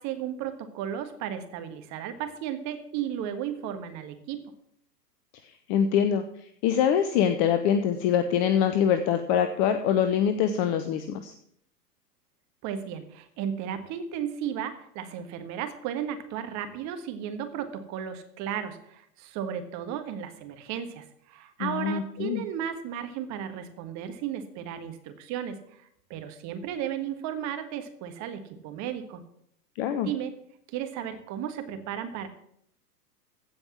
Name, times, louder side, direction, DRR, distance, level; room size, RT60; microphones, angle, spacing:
voice 1, 0.0-4.4 12.6-29.2 30.0-30.3 30.7-32.3, right 9 dB, 35° right, 8 dB, 1.6 m, -34 dB
voice 2, 5.7-6.2 6.6-11.3 21.6-22.4 29.8-30.1, left 8 dB, 20° left, 9 dB, 0.4 m, -24 dB
15.5 x 5.3 x 7.3 m, 0.71 s
hypercardioid pair, 110°, 49 cm